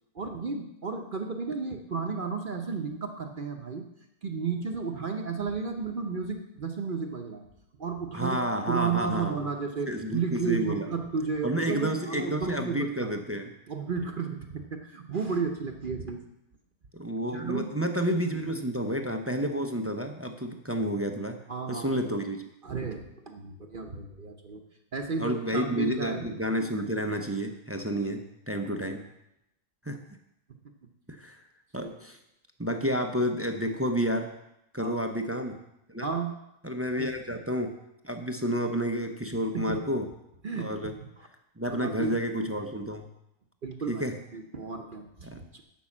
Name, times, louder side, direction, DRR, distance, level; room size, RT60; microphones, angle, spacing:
voice 1, 0.1-3.8 4.2-7.5 7.8-13.1 13.7-16.2 17.3-17.7 18.3-18.7 21.5-22.0 22.6-24.6 24.9-26.3 31.8-31.9 34.8-34.9 36.0-36.3 37.0-37.1 39.5-39.8 40.4-40.7 41.2-41.3 41.7-42.1 43.6-44.0 44.3-45.6, right 5 dB, 45° right, 4 dB, 0.9 m, -33 dB
voice 2, 8.1-9.3 9.9-10.9 11.4-13.5 16.9-21.4 21.7-22.4 25.2-29.0 29.9-30.0 31.1-31.4 31.7-32.2 32.6-34.3 34.7-35.6 35.9-36.1 36.6-37.8 38.0-40.1 40.6-40.9 41.6-43.1 43.9-44.2 45.2-45.4, equal, 15° right, 5 dB, 0.5 m, -30 dB
11.5 x 5.5 x 7.2 m, 0.85 s
omnidirectional pair, 1.4 m